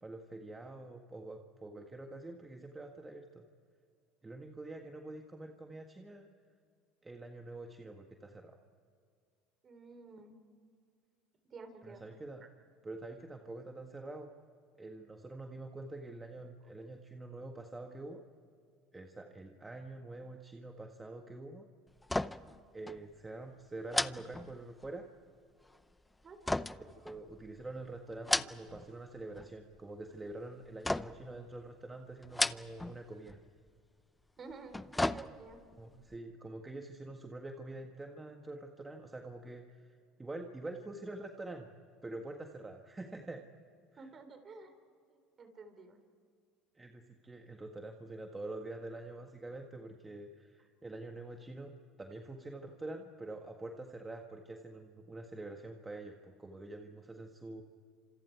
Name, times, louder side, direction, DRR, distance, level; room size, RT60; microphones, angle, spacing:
voice 1, 0.0-3.4 4.2-6.3 7.0-8.6 11.8-12.4 12.8-14.3 14.8-18.2 18.9-21.6 22.7-25.1 27.0-33.4 35.7-41.7 42.0-43.4 43.9-44.1 46.7-51.7 52.0-57.6, right 2 dB, 15° right, 3 dB, 1.6 m, -46 dB
voice 2, 9.6-10.3 11.5-12.0 26.2-26.4 34.4-35.6 44.0-44.7 45.1-46.0, right 4 dB, 35° right, 7 dB, 3.9 m, -51 dB
sound 1, 22.0-22.6 22.9-23.0 23.9-25.0 26.5-27.6 28.1-28.9 29.2-29.8 30.8-31.4 32.2-33.0 33.3-33.4 34.5-35.7 36.1-36.2, left 2 dB, 10° left, 0.6 m, -35 dB
29.5 x 27.0 x 4.7 m, 2.2 s
supercardioid pair, 110°, 0 cm